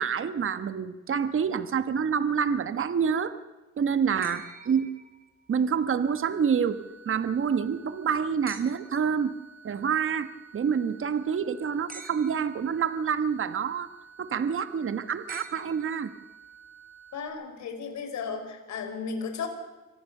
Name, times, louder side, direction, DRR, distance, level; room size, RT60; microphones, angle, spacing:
voice 1, 0.0-3.3 3.8-4.9 5.5-6.8 7.0-9.3 9.6-13.9 14.2-16.1, right 7 dB, 45° right, 11 dB, 1.3 m, -27 dB
sound 1, 4.2-5.6 8.5-9.1 11.9-12.7 15.3-16.3 17.9-18.0, right 4 dB, 30° right, 3.3 m, -46 dB
sound 2, 5.9-17.3, right 5 dB, 20° left, 5.5 m, -52 dB
voice 2, 17.1-19.5, left 5 dB, 65° left, 6 dB, 4.7 m, -34 dB
25.0 x 17.5 x 6.7 m, 1.2 s
cardioid pair, 90°, 30 cm